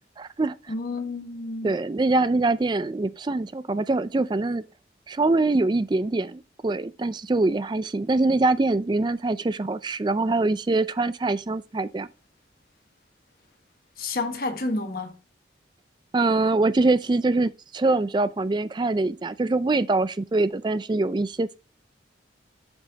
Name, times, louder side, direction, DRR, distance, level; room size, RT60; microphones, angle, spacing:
voice 1, 0.2-0.6 1.6-4.7 5.1-12.1 16.1-21.6, right 2 dB, 25° right, 0.3 m, -24 dB
voice 2, 0.7-1.7 14.0-15.1, left 2 dB, 50° left, 1.3 m, -30 dB
7.5 x 6.0 x 3.9 m
head